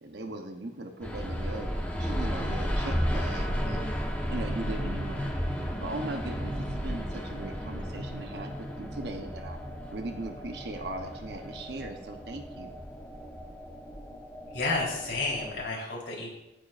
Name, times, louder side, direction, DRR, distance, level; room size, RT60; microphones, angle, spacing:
voice 1, 0.0-3.8 4.3-9.6 9.9-12.7, right 2 dB, 60° right, 4 dB, 1.0 m, -39 dB
sound 1, 1.0-15.7, equal, 10° left, 1.1 m, -34 dB
voice 2, 14.5-16.3, left 3 dB, 75° left, -4 dB, 3.8 m, -31 dB
16.0 x 8.9 x 2.6 m, 0.91 s
head